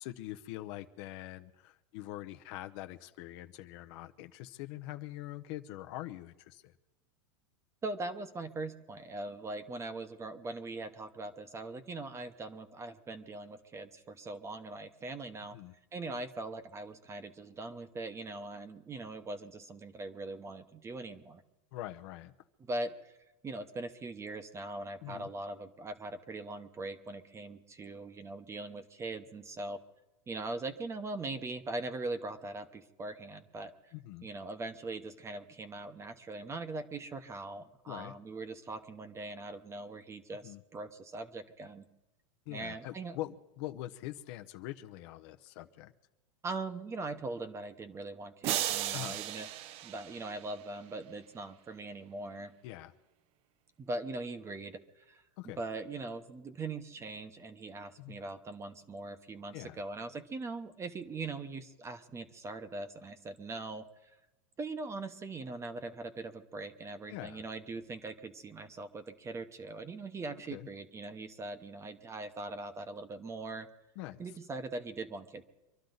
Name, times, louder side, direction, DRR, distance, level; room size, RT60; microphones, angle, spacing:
voice 1, 0.0-6.7 15.5-15.7 21.7-22.3 25.0-25.3 33.9-34.3 37.9-38.1 40.4-40.6 42.5-45.9 48.9-49.2 52.6-52.9 55.4-55.6 58.0-58.2 59.5-59.8 67.1-67.4 70.5-70.7 74.0-74.2, left 15 dB, 50° left, 8 dB, 0.8 m, -43 dB
voice 2, 7.8-15.6 15.9-21.4 22.6-23.1 23.4-29.8 30.3-33.7 34.2-41.8 42.5-43.2 46.4-49.5 49.8-52.5 53.8-64.1 64.6-73.7 74.2-75.4, right 2 dB, 15° right, 10 dB, 0.9 m, -41 dB
sound 1, 48.4-50.8, right 13 dB, 35° right, 0.5 m, -36 dB
25.0 x 12.0 x 4.0 m, 1.0 s
supercardioid pair, 145°, 17 cm